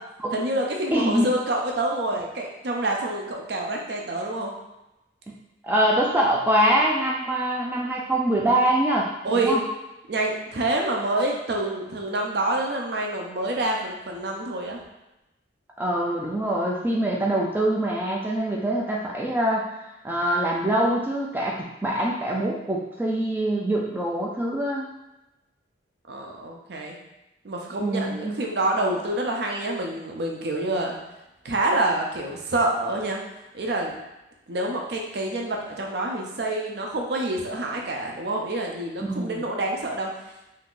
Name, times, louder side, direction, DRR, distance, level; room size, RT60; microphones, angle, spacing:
voice 1, 0.3-4.5 9.2-9.6 10.1-14.8 26.1-27.0 27.4-31.0 31.4-33.2 33.5-33.9 34.5-40.1, right 2 dB, 60° right, 0 dB, 0.5 m, -27 dB
voice 2, 0.9-1.3 5.3-5.4 5.6-9.6 15.8-19.8 20.0-24.9 27.8-28.4 39.0-39.4, right 1 dB, 10° right, -3 dB, 0.3 m, -24 dB
2.7 x 2.4 x 3.7 m, 0.95 s
head